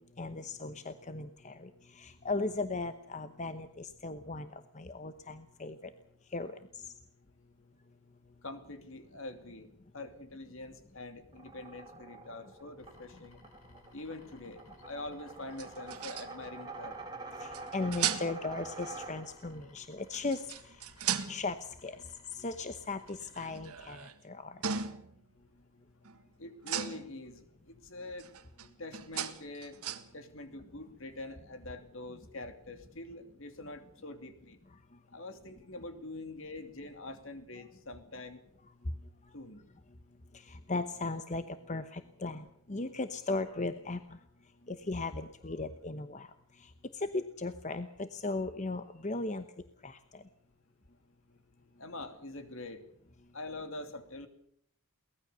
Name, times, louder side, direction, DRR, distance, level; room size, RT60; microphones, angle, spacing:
voice 1, 0.2-5.9 6.3-6.9 17.4-20.5 21.3-22.0 22.3-24.6 40.3-44.2 44.7-46.3 46.6-49.4 49.8-50.2, left 3 dB, 35° left, 10 dB, 0.9 m, -37 dB
voice 2, 8.4-9.7 9.9-13.4 13.9-16.9 26.4-28.3 28.8-29.8 30.1-34.6 35.1-38.4 39.3-39.7 51.8-52.8 53.3-54.3, left 2 dB, 60° left, 8 dB, 2.7 m, -45 dB
sound 1, 11.3-19.6, right 3 dB, 20° right, 2.6 m, -46 dB
sound 2, 12.8-23.5, left 2 dB, 80° left, 6.9 m, -62 dB
sound 3, 15.6-16.5 17.5-18.5 20.1-21.7 23.1-24.2 24.6-25.2 26.0-26.3 26.6-27.3 28.2-30.1, right 8 dB, 90° right, 1.7 m, -37 dB
23.0 x 18.5 x 6.8 m, 0.66 s
head